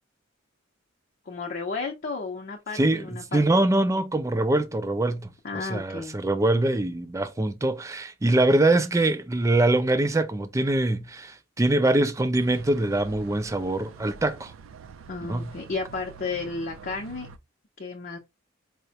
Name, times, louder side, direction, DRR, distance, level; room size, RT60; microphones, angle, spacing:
voice 1, 1.3-3.5 5.4-6.2 15.1-17.3 17.8-18.2, left 4 dB, 45° left, 0.6 m, -33 dB
voice 2, 2.7-14.5 15.3-15.5, right 2 dB, 15° right, 0.4 m, -24 dB
sound 1, 12.3-17.4, right 5 dB, 80° right, 0.4 m, -46 dB
4.6 x 2.1 x 2.7 m
head